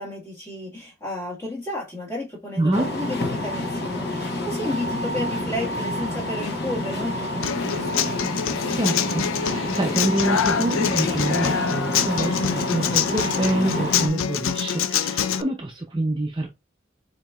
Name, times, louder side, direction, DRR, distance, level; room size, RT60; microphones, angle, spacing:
voice 1, 0.0-8.1, left 1 dB, 15° left, 1.7 m, -32 dB
voice 2, 2.6-2.9 8.7-16.5, right 1 dB, 25° right, 0.5 m, -26 dB
sound 1, 2.7-14.1, left 1 dB, 50° left, 1.0 m, -28 dB
Human voice / Acoustic guitar, 7.4-15.4, left 8 dB, 85° left, 0.4 m, -25 dB
7.2 x 2.8 x 2.4 m
head